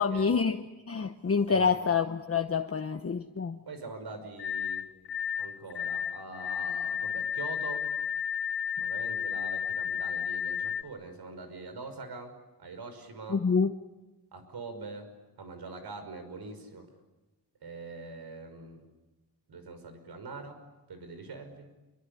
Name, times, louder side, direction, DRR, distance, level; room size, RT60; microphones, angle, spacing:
voice 1, 0.0-3.6 13.3-13.7, left 5 dB, 35° left, 1.1 m, -27 dB
voice 2, 1.5-1.9 3.7-4.9 5.4-7.9 8.8-13.4 14.3-15.1 15.4-16.9 17.6-18.9 19.5-20.6 20.9-21.7, right 3 dB, 70° right, 5.8 m, -43 dB
sound 1, 4.4-10.8, left 7 dB, 90° left, 1.3 m, -32 dB
28.5 x 23.5 x 8.5 m
wide cardioid pair, 115°, 40 cm